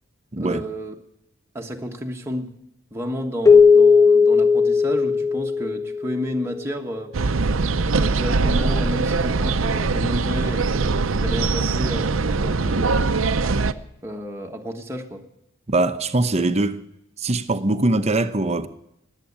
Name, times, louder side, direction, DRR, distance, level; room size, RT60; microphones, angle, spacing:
voice 1, 0.4-0.9 1.5-2.5 2.9-7.1 7.9-13.0 14.0-15.2, equal, 10° right, 1.4 m, -31 dB
Keyboard (musical), 3.5-6.4, left 5 dB, 15° left, 0.5 m, -16 dB
sound 1, 7.1-13.7, right 3 dB, 70° right, 0.7 m, -22 dB
voice 2, 15.7-16.8 17.2-18.7, right 2 dB, 30° right, 0.8 m, -22 dB
19.5 x 8.4 x 8.7 m
head